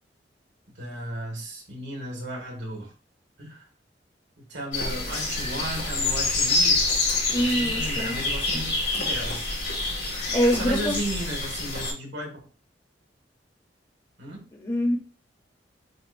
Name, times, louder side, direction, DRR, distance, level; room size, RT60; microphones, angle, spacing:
voice 1, 0.7-2.9 3.4-3.6 4.5-6.8 7.4-9.5 10.5-12.4 14.2-14.4, right 1 dB, 80° right, 1.8 m, -35 dB
sound 1, 4.7-11.9, left 2 dB, 80° left, 2.6 m, -27 dB
voice 2, 7.3-8.2 10.3-11.0 14.5-15.0, equal, 25° left, 0.8 m, -24 dB
7.5 x 2.5 x 2.6 m
head